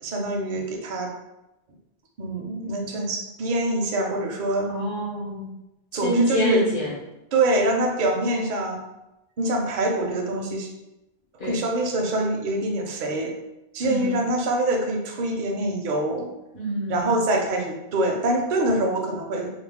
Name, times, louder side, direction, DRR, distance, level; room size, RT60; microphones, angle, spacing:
voice 1, 0.0-1.1 2.2-4.7 5.9-6.6 7.3-8.8 9.4-10.7 11.4-13.3 13.7-16.3 16.9-19.5, right 1 dB, 60° right, 1 dB, 0.6 m, -25 dB
voice 2, 4.7-5.5 6.0-6.9 11.4-11.6 13.8-14.2 16.5-17.0, right 1 dB, 55° left, -5 dB, 1.0 m, -26 dB
2.4 x 2.0 x 3.3 m, 0.94 s
omnidirectional pair, 1.0 m